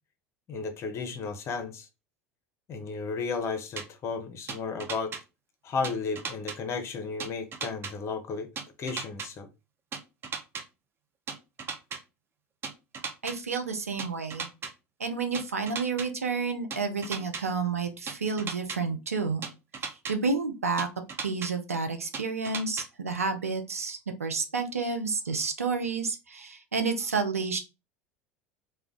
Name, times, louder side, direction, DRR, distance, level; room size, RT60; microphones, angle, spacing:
voice 1, 0.5-1.9 2.7-5.1 5.6-8.5 8.8-9.5, left 4 dB, 35° left, 0.7 m, -33 dB
sound 1, 3.8-3.9 4.5-5.2 5.8-6.6 7.2-7.9 8.6-9.3 9.9-10.6 11.3-12.0 12.6-13.3 14.0-14.7 15.3-16.1 16.7-17.4 18.1-18.8 19.4-20.1 20.8-21.5 22.1-22.9, right 5 dB, 30° right, 0.5 m, -36 dB
voice 2, 13.2-14.5 15.0-19.4 19.8-20.9 21.2-27.6, right 4 dB, 85° right, 0.5 m, -30 dB
2.4 x 2.2 x 3.5 m
figure-of-eight pair, 75°, 8 cm